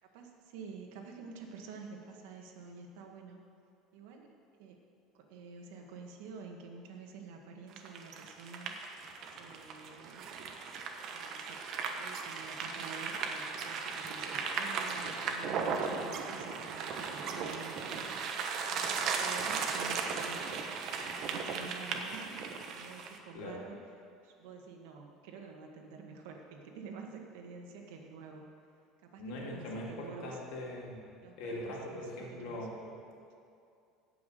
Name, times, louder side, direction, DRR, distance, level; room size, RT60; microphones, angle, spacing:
voice 1, 0.1-3.4 3.9-4.3 4.6-4.8 5.1-8.7 9.3-10.3 11.0-18.2 18.7-20.4 20.8-23.8 24.2-28.5 29.0-30.4 31.2-32.7, right 5 dB, 85° right, 2 dB, 1.8 m, -49 dB
sound 1, 7.7-23.2, right 5 dB, 50° right, 1.2 m, -37 dB
voice 2, 29.2-32.7, left 1 dB, 70° left, -3 dB, 3.0 m, -41 dB
16.5 x 6.0 x 6.8 m, 2.5 s
cardioid pair, 145°, 0 cm